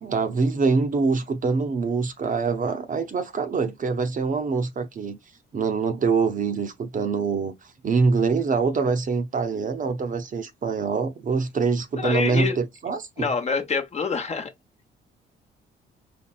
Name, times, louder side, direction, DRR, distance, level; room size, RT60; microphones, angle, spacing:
voice 1, 0.0-5.2 5.5-7.5 7.8-13.3, right 4 dB, 40° right, 0.7 m, -24 dB
voice 2, 12.0-12.6 13.2-14.5, left 5 dB, 35° left, 0.8 m, -26 dB
4.2 x 3.2 x 2.4 m
cardioid pair, 90°, 20 cm